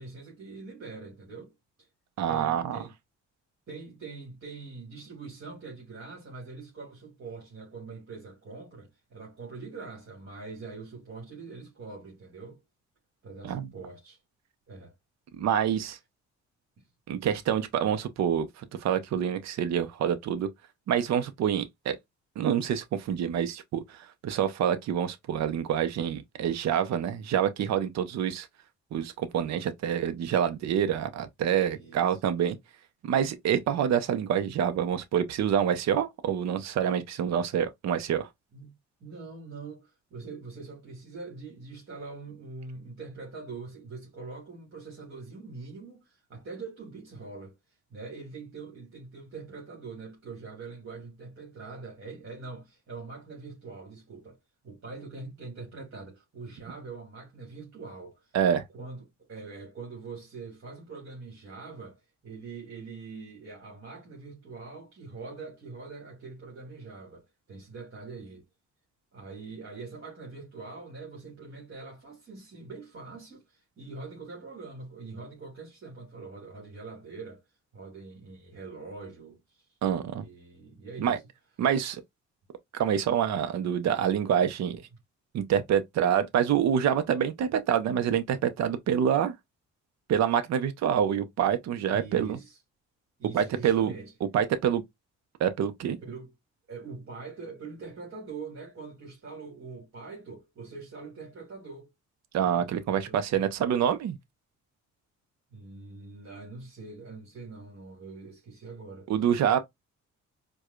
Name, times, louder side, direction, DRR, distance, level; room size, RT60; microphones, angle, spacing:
voice 1, 0.0-1.5 1.8-1.9 2.3-2.9 3.7-12.6 13.2-14.2 14.7-14.9 31.7-32.2 38.5-38.7 39.0-47.5 47.9-54.4 54.6-58.3 58.7-68.4 69.1-77.4 77.7-79.7 80.1-81.2 91.9-92.6 93.2-94.1 96.0-96.3 96.7-101.9 102.4-102.6 103.0-103.5 105.5-109.1, right 4 dB, 45° right, 1.9 m, -43 dB
voice 2, 2.2-2.8 13.4-13.7 15.4-16.0 17.1-20.5 20.9-22.0 22.4-28.5 28.9-32.6 33.0-38.3 58.3-58.6 79.8-80.3 81.0-81.2 81.6-82.0 82.7-84.8 85.3-89.3 90.1-92.4 93.3-93.9 94.3-94.8 95.4-96.0 102.3-104.2 109.1-109.6, right 9 dB, 65° right, 0.7 m, -27 dB
4.6 x 2.3 x 2.3 m
cardioid pair, 90°, 30 cm